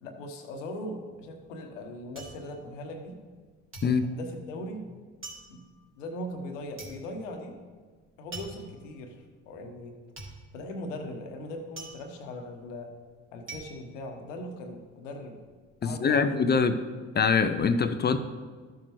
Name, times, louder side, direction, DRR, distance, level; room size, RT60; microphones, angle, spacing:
voice 1, 0.0-3.2 3.8-4.8 5.5-5.6 6.0-7.6 8.2-10.0 10.5-12.9 13.3-15.4 15.8-16.4 16.7-16.9, left 1 dB, 80° left, 4 dB, 1.2 m, -39 dB
sound 1, 1.0-3.4 3.7-14.8 15.2-15.8, right 3 dB, 35° right, 2.7 m, -46 dB
voice 2, 15.8-16.8 17.1-18.2, left 5 dB, 25° left, 11 dB, 0.6 m, -24 dB
13.0 x 7.3 x 3.1 m, 1.5 s
hypercardioid pair, 55°, 37 cm